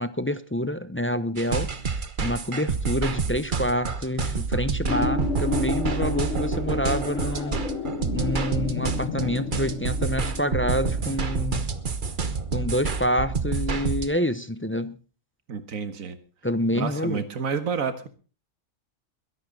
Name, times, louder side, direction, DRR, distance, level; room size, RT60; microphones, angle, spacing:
voice 1, 0.0-1.7 2.2-7.6 8.1-11.7 12.5-15.0 16.4-17.2, left 1 dB, 10° left, 13 dB, 0.7 m, -27 dB
sound 1, 1.4-14.1, right 5 dB, 40° right, 1.3 m, -28 dB
sound 2, 4.9-11.1, left 4 dB, 55° left, 3.4 m, -32 dB
sound 3, 6.8-11.3 13.7-13.9, left 6 dB, 70° left, 1.7 m, -37 dB
voice 2, 15.5-16.2 16.7-18.1, right 6 dB, 85° right, 11 dB, 1.9 m, -29 dB
22.0 x 11.0 x 3.9 m, 0.36 s
omnidirectional pair, 1.4 m